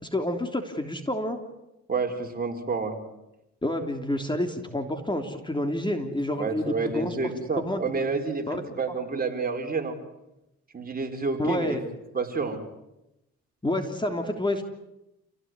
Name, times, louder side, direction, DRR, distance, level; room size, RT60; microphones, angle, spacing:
voice 1, 0.0-1.4 3.6-8.0 8.5-8.6 11.4-11.8 13.6-14.6, left 1 dB, 15° left, 5 dB, 3.3 m, -29 dB
voice 2, 1.9-3.0 6.4-9.9 10.7-11.8 12.1-12.6, right 4 dB, 30° right, 4 dB, 5.0 m, -29 dB
29.0 x 17.5 x 9.7 m, 0.90 s
cardioid pair, 90°, 30 cm